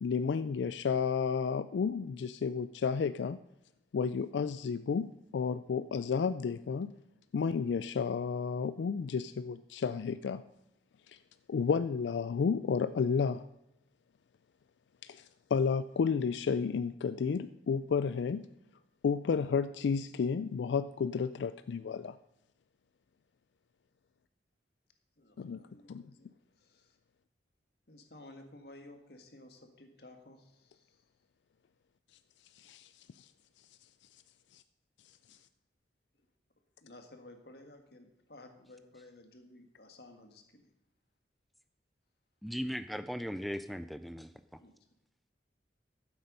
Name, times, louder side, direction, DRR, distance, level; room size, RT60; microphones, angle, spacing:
voice 1, 0.0-3.4 3.9-6.9 7.3-10.4 11.1-11.2 11.5-13.5 15.0-18.5 19.0-22.2 25.4-25.6 25.9-26.0 32.6-33.3 34.5-34.6 35.3-35.4, left 6 dB, 85° left, 13 dB, 0.4 m, -32 dB
voice 2, 25.2-27.0 27.9-31.0 36.2-36.3 36.8-40.7 44.6-44.7, left 1 dB, 65° left, 5 dB, 1.6 m, -55 dB
voice 3, 42.4-44.3, equal, ahead, 10 dB, 0.3 m, -37 dB
13.5 x 7.9 x 5.4 m, 0.87 s
head